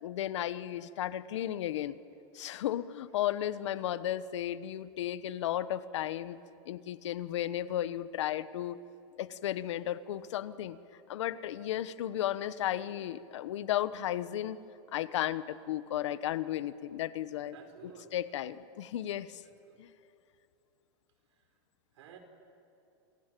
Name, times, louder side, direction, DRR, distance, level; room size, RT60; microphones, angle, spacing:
voice 1, 0.0-2.0 2.3-6.4 6.7-8.8 9.2-10.8 11.1-14.6 14.9-17.5 18.1-19.4 19.8-19.9, left 12 dB, 75° left, 14 dB, 1.2 m, -34 dB
voice 2, 17.5-18.1 19.0-19.8 21.3-21.5 21.9-22.2, right 7 dB, 70° right, 5 dB, 5.2 m, -55 dB
28.0 x 21.0 x 9.2 m, 2.7 s
supercardioid pair, 170°, 15 cm